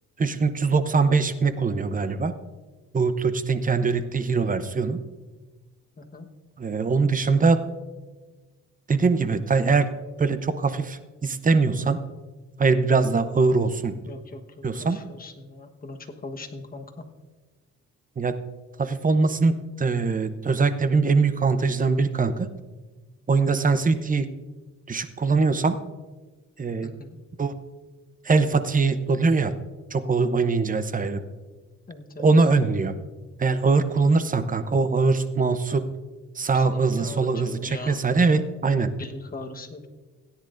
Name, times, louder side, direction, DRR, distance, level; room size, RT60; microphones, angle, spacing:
voice 1, 0.2-2.3 2.9-5.0 6.6-7.6 8.9-9.9 10.2-12.0 12.6-14.0 14.6-15.0 18.2-18.4 18.8-22.5 23.3-24.3 24.9-25.8 26.6-26.9 27.4-27.5 28.2-29.5 29.9-31.2 32.2-32.9 33.4-35.8 36.4-38.9, right 4 dB, 25° right, 11 dB, 0.8 m, -22 dB
voice 2, 6.0-6.3 14.0-17.0 26.8-27.2 31.9-32.3 36.5-38.0 38.4-38.5 39.0-39.9, left 2 dB, 30° left, 4 dB, 1.3 m, -40 dB
17.0 x 10.0 x 2.6 m, 1.3 s
cardioid pair, 90°, 30 cm